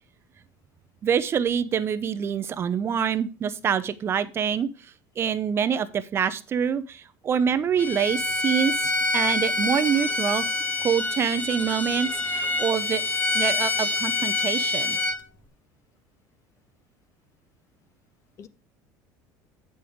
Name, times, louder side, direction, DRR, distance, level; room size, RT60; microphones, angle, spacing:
voice 1, 1.0-4.7 5.2-10.4 10.8-13.0 13.3-15.0, right 8 dB, 30° right, 12 dB, 0.6 m, -26 dB
Bowed string instrument, 7.8-15.2, left 2 dB, 20° left, 1.4 m, -26 dB
voice 2, 12.2-12.6 18.4-18.5, left 7 dB, 40° left, 15 dB, 0.8 m, -49 dB
9.3 x 5.4 x 5.0 m, 0.33 s
cardioid pair, 140°, 8 cm